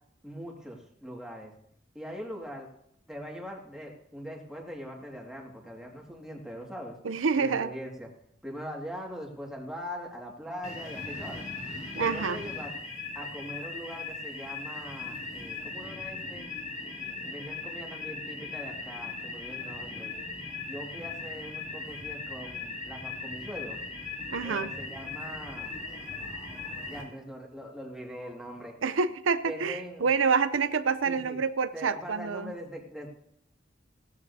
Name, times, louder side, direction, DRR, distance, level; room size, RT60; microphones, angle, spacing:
voice 1, 0.2-1.5 1.9-2.7 3.1-7.0 7.3-8.1 8.4-11.4 11.9-12.7 13.1-16.5 17.2-20.1 20.7-23.8 24.4-25.8 26.9-28.8 29.5-30.1 31.1-31.4 31.7-33.1, equal, 5° right, -1 dB, 1.9 m, -41 dB
voice 2, 7.0-7.7 12.0-12.4 24.3-24.7 28.8-32.5, right 5 dB, 90° right, 12 dB, 0.6 m, -27 dB
sound 1, 10.6-27.0, left 3 dB, 35° left, 3.9 m, -39 dB
17.0 x 13.5 x 2.7 m, 0.72 s
head